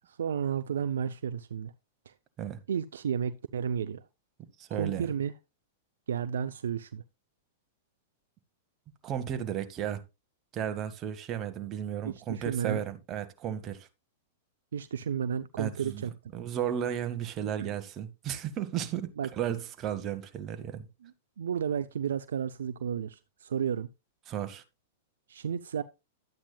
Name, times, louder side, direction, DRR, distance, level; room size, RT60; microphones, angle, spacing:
voice 1, 0.2-1.7 2.1-2.2 2.7-4.0 4.7-5.3 6.1-7.0 12.0-12.8 14.7-16.1 17.6-17.7 19.2-19.3 21.0-21.1 21.4-23.9 25.3-25.8, right 8 dB, 75° right, 0.5 m, -32 dB
voice 2, 4.6-5.1 9.0-10.0 10.5-13.9 15.6-16.1 16.3-20.9 24.3-24.6, right 9 dB, 35° right, 1.6 m, -34 dB
12.0 x 8.7 x 2.3 m
hypercardioid pair, 105°, 0 cm